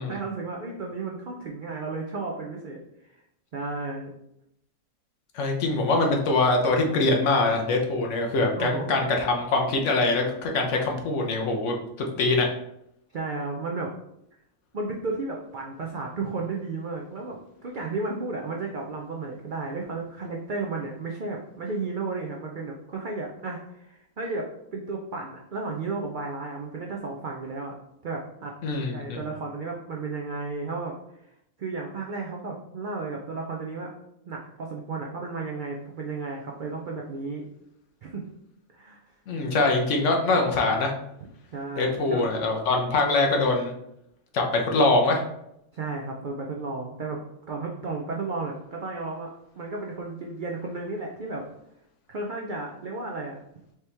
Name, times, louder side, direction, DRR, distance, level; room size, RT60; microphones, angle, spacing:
voice 1, 0.0-2.8 3.5-4.1 8.6-9.0 13.1-13.9 14.7-27.7 28.0-28.5 28.9-31.0 31.6-33.9 34.3-37.4 38.0-38.2 38.7-39.0 41.5-42.3 45.7-47.2 47.5-49.3 49.6-51.4 52.1-53.3, right 3 dB, 70° right, 0 dB, 0.4 m, -33 dB
voice 2, 5.3-11.8 12.2-12.5 28.6-29.2 39.3-40.9 41.8-43.7 44.3-45.2, left 2 dB, 65° left, 2 dB, 1.0 m, -23 dB
4.8 x 2.9 x 3.3 m, 0.80 s
omnidirectional pair, 1.5 m